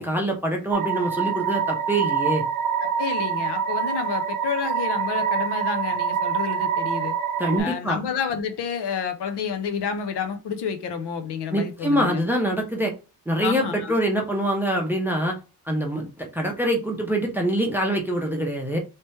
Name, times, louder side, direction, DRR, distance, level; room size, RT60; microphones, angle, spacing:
voice 1, 0.0-2.4 7.4-8.0 11.5-12.9 13.3-15.4 15.7-18.8, right 1 dB, 5° right, 0.5 m, -24 dB
sound 1, 0.7-7.6, right 7 dB, 50° right, 0.5 m, -25 dB
voice 2, 2.8-7.2 7.6-12.2 13.4-14.0, left 6 dB, 75° left, 0.7 m, -29 dB
3.3 x 2.9 x 3.1 m
wide cardioid pair, 175°, 41 cm